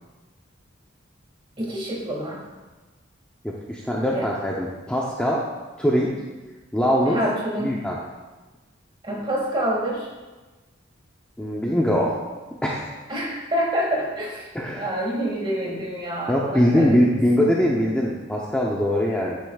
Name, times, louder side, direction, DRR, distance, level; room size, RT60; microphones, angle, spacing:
voice 1, 1.6-2.4 4.1-4.3 7.1-7.7 9.0-10.1 13.1-14.5 14.8-17.5, equal, 25° right, -3 dB, 2.0 m, -27 dB
voice 2, 3.4-5.5 5.8-6.2 6.7-7.2 7.6-8.0 11.4-12.2 12.6-12.9 14.5-14.9 16.3-19.4, equal, 5° left, -4 dB, 0.6 m, -22 dB
10.0 x 8.0 x 2.4 m, 1.2 s
head